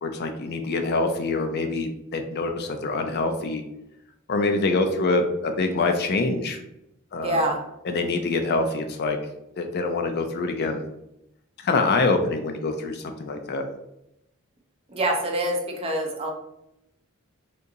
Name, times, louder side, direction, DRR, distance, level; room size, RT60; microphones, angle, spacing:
voice 1, 0.0-3.6 4.3-6.6 7.1-7.5 7.8-9.2 9.6-10.8 11.6-13.6, left 3 dB, 50° left, 5 dB, 0.4 m, -25 dB
voice 2, 7.2-7.6 14.9-16.3, right 1 dB, 30° right, 1 dB, 0.6 m, -25 dB
3.6 x 2.8 x 2.6 m, 0.84 s
head